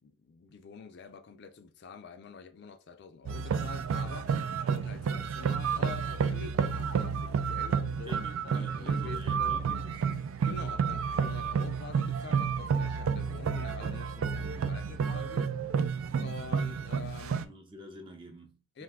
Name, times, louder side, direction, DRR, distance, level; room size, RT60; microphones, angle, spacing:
voice 1, 0.0-9.9 10.5-15.5 16.2-17.4 18.7-18.8, left 5 dB, 55° left, 0.4 m, -47 dB
sound 1, 3.3-17.5, right 6 dB, 80° right, 0.3 m, -31 dB
voice 2, 8.0-10.1 14.4-14.8 17.4-18.8, equal, 25° right, 0.5 m, -48 dB
2.6 x 2.3 x 3.4 m
head